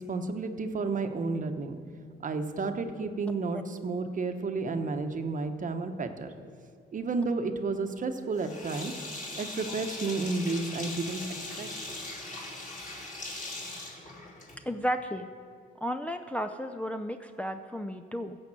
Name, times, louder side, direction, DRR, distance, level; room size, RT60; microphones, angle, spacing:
voice 1, 0.0-1.8 2.2-6.3 6.9-8.9 9.4-11.2 11.6-11.7, right 3 dB, 40° right, 7 dB, 1.0 m, -31 dB
Sink (filling or washing), 8.4-14.8, left 2 dB, 40° left, 2.8 m, -40 dB
voice 2, 14.7-15.3 15.8-18.4, equal, 5° left, 6 dB, 0.4 m, -33 dB
15.5 x 5.2 x 7.6 m, 2.3 s
cardioid pair, 90°, 20 cm